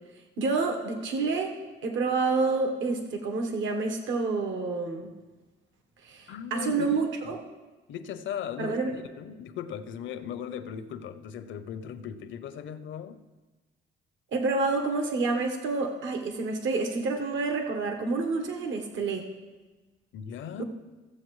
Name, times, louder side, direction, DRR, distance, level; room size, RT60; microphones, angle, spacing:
voice 1, 0.4-1.5 1.8-5.1 6.0-7.4 8.6-8.9 14.3-19.3 20.6-20.7, right 3 dB, 75° right, 1.2 m, -28 dB
voice 2, 6.3-7.3 7.9-8.8 9.2-13.2 20.1-20.6, left 8 dB, 70° left, 0.7 m, -38 dB
16.0 x 7.5 x 3.2 m
cardioid pair, 90°, 20 cm